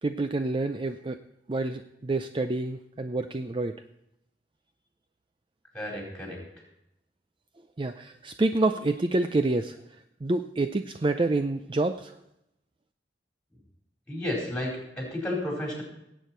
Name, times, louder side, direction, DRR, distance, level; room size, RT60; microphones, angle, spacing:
voice 1, 0.0-1.2 1.5-3.8 7.8-12.2, right 2 dB, 30° right, 9 dB, 0.4 m, -28 dB
voice 2, 5.7-6.4 14.1-15.8, left 1 dB, 5° left, -1 dB, 4.4 m, -32 dB
18.0 x 8.4 x 4.5 m, 0.82 s
head